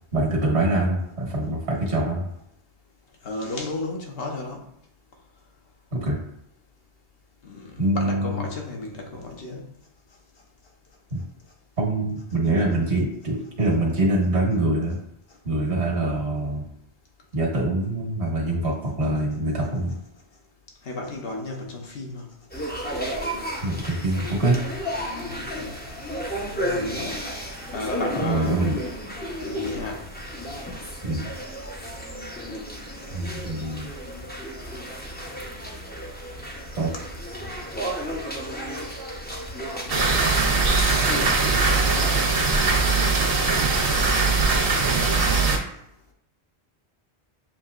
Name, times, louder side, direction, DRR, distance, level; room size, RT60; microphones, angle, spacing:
voice 1, 0.1-2.2 5.9-6.2 7.8-8.4 11.1-11.2 11.8-15.0 15.4-16.7 17.3-19.9 23.6-24.6 28.2-28.7 31.0-31.3 33.1-33.9 36.8-36.9, right 1 dB, 85° right, -2 dB, 1.6 m, -24 dB
voice 2, 3.2-4.6 7.4-9.7 15.7-16.2 20.8-22.3 25.2-25.8 26.5-27.3 27.7-28.7 29.4-30.1 41.0-41.6 41.9-42.8, left 2 dB, 60° left, 1 dB, 1.1 m, -34 dB
sound 1, 22.5-42.2, equal, 10° left, 0.6 m, -33 dB
sound 2, 39.9-45.6, right 3 dB, 60° right, 1.0 m, -21 dB
7.1 x 2.8 x 2.4 m, 0.75 s
omnidirectional pair, 1.1 m